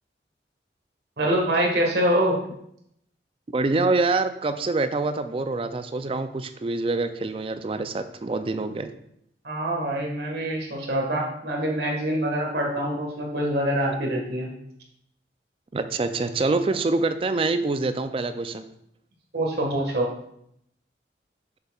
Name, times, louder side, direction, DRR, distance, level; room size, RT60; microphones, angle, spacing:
voice 1, 1.2-2.4 9.4-14.5 19.3-20.1, right 1 dB, 65° right, 0 dB, 1.6 m, -25 dB
voice 2, 3.5-8.9 15.7-18.6, right 3 dB, 30° right, 10 dB, 0.3 m, -25 dB
6.8 x 6.6 x 2.4 m, 0.74 s
head